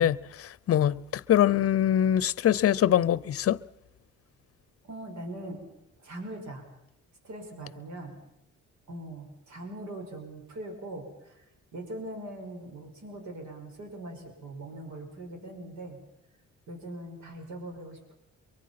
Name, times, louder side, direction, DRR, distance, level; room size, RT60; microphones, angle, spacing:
voice 1, 0.0-3.6, left 10 dB, 50° left, 0.7 m, -24 dB
voice 2, 4.8-5.6 6.0-6.6 7.2-8.1 8.9-11.4 11.7-16.0 16.7-18.1, right 1 dB, 70° right, 6.1 m, -41 dB
24.0 x 23.5 x 5.9 m
cardioid pair, 90°, 30 cm